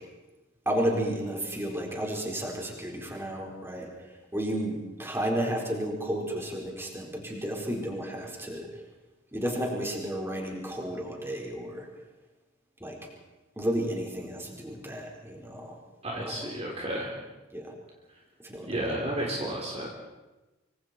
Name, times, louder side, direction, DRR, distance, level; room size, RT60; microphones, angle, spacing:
voice 1, 0.6-3.9 4.3-8.7 9.3-11.9 12.8-13.0 13.6-15.8 16.3-16.5 17.5-17.7 18.4-18.8, right 1 dB, 10° right, -1 dB, 4.6 m, -32 dB
voice 2, 16.0-17.2 18.7-19.9, right 1 dB, 30° right, -2 dB, 3.7 m, -32 dB
25.5 x 25.0 x 4.5 m, 1.1 s
head